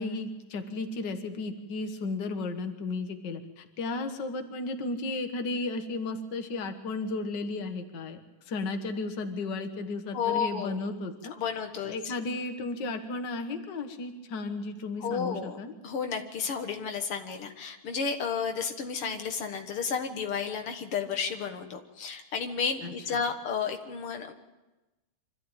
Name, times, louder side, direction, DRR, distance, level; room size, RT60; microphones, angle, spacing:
voice 1, 0.0-8.2 8.5-11.3 11.8-15.7 22.8-23.2, left 3 dB, 55° left, 6 dB, 2.1 m, -34 dB
voice 2, 10.1-10.8 11.3-11.9 15.0-15.6 15.8-24.3, left 6 dB, 80° left, 5 dB, 2.4 m, -32 dB
25.5 x 14.0 x 9.0 m, 1.1 s
omnidirectional pair, 2.4 m